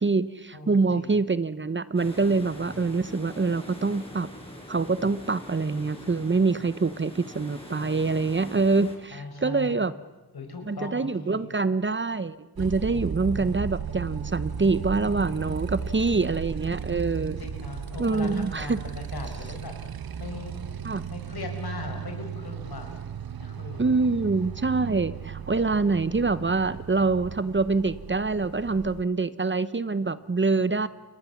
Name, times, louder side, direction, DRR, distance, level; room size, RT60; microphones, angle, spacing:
voice 1, 0.0-4.3 4.7-9.9 10.7-17.4 18.0-18.8 20.8-21.1 23.8-30.9, right 4 dB, 30° right, 16 dB, 0.9 m, -25 dB
voice 2, 0.5-1.1 9.1-9.8 10.3-11.5 12.9-13.5 17.4-19.7 20.2-20.6 21.1-22.9 23.4-23.9, left 3 dB, 75° left, 4 dB, 5.4 m, -39 dB
sound 1, 2.0-9.0, left 1 dB, 15° left, 6.2 m, -43 dB
Motorcycle, 12.6-29.0, right 7 dB, 65° right, 1.0 m, -36 dB
29.0 x 23.0 x 7.2 m, 1.2 s
wide cardioid pair, 85°, 38 cm